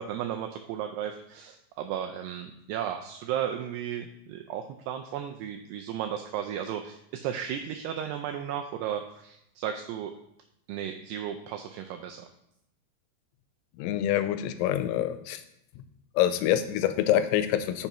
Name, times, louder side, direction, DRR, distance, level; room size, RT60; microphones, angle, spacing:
voice 1, 0.0-10.1 10.7-12.3, right 9 dB, 90° right, 5 dB, 2.3 m, -34 dB
voice 2, 13.7-15.4 15.8-15.9 16.1-17.9, left 11 dB, 85° left, 11 dB, 2.9 m, -26 dB
9.9 x 6.8 x 3.0 m, 0.79 s
omnidirectional pair, 5.3 m